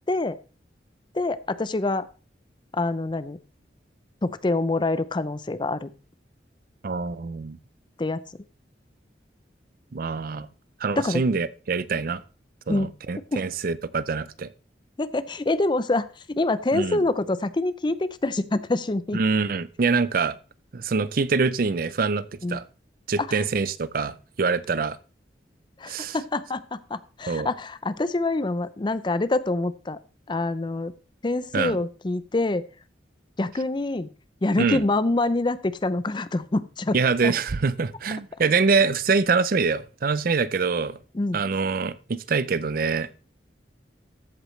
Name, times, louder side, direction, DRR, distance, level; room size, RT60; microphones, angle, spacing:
voice 1, 0.1-0.4 1.1-2.1 2.7-3.4 4.2-5.9 8.0-8.2 11.0-11.2 12.7-12.9 13.3-13.5 15.0-19.2 22.4-22.6 23.2-23.4 25.8-30.0 30.3-30.9 31.2-32.6 33.4-34.1 34.4-37.3 41.1-41.4, left 2 dB, 25° left, 0.5 m, -26 dB
voice 2, 6.8-7.6 9.9-10.5 10.8-12.2 12.7-14.5 16.7-17.0 19.1-20.4 20.7-22.6 23.1-25.0 25.9-26.2 27.3-27.5 31.5-31.8 34.6-34.8 36.9-41.0 41.3-43.1, right 4 dB, 50° right, 0.5 m, -25 dB
14.0 x 8.0 x 3.2 m
head